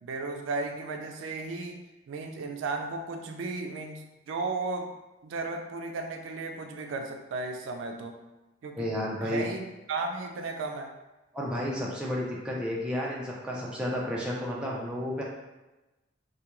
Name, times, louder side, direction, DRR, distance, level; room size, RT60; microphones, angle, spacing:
voice 1, 0.0-4.9 5.2-8.2 8.6-8.9 9.2-10.9, right 3 dB, 85° right, 4 dB, 0.3 m, -35 dB
voice 2, 8.8-9.4 11.3-15.2, equal, 5° right, -5 dB, 0.4 m, -32 dB
2.3 x 2.2 x 2.9 m, 1.1 s
head